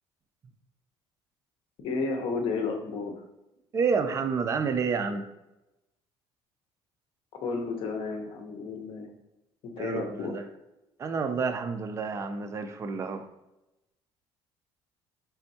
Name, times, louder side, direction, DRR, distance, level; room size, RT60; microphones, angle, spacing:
voice 1, 1.8-3.2 7.3-9.1 9.6-10.4, left 4 dB, 60° left, 4 dB, 0.8 m, -32 dB
voice 2, 3.7-5.3 9.8-10.5 11.0-13.3, right 5 dB, 30° right, 7 dB, 0.4 m, -29 dB
4.3 x 3.4 x 2.7 m, 0.94 s
cardioid pair, 145°, 11 cm